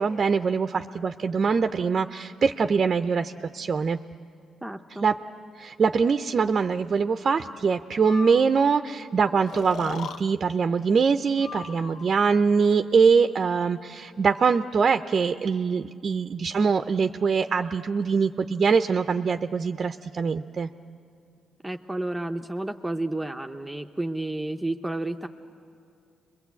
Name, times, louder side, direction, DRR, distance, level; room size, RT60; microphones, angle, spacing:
voice 1, 0.0-4.0 5.0-5.1 5.6-20.7, right 5 dB, 45° right, 8 dB, 0.6 m, -23 dB
voice 2, 4.6-5.1 21.6-25.3, right 2 dB, 10° right, 4 dB, 0.7 m, -31 dB
Breathing, 8.0-8.7 9.5-10.2 11.4-12.2, left 5 dB, 75° left, 0.7 m, -38 dB
29.0 x 22.0 x 8.3 m, 2.4 s
cardioid pair, 90°, 0 cm